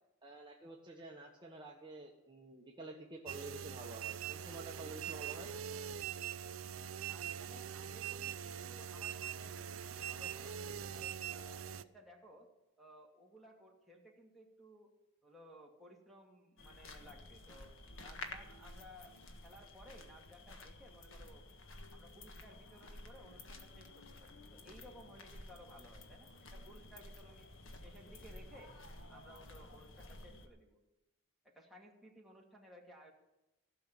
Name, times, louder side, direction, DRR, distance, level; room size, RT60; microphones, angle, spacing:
voice 1, 0.2-5.5, right 2 dB, 20° right, -2 dB, 1.2 m, -50 dB
sound 1, 3.3-11.8, right 9 dB, 65° right, 0.6 m, -43 dB
voice 2, 7.0-9.7 10.0-10.6 10.9-12.5 12.8-14.9 15.2-17.7 18.0-19.2 19.4-21.5 21.9-27.5 27.8-28.8 29.1-30.8 31.4-33.1, equal, ahead, -3 dB, 2.4 m, -58 dB
sound 2, 16.6-30.5, left 2 dB, 60° left, 1.6 m, -52 dB
16.0 x 6.5 x 8.9 m, 0.97 s
head